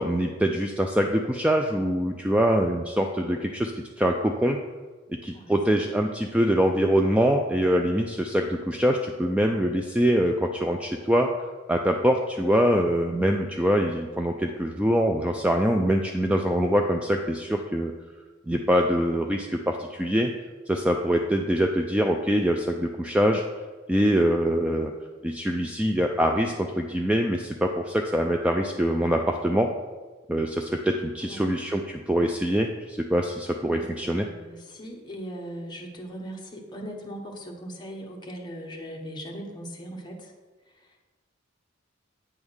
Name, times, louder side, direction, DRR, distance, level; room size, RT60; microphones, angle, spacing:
voice 1, 0.0-3.7 4.0-4.6 5.1-11.3 11.7-17.9 18.5-20.3 20.7-23.4 23.9-24.9 25.2-29.7 30.3-34.3, equal, 5° right, 3 dB, 0.3 m, -24 dB
voice 2, 31.2-31.6 33.7-40.3 40.7-41.0, equal, 20° left, 0 dB, 1.0 m, -39 dB
8.8 x 3.6 x 6.3 m, 1.3 s
head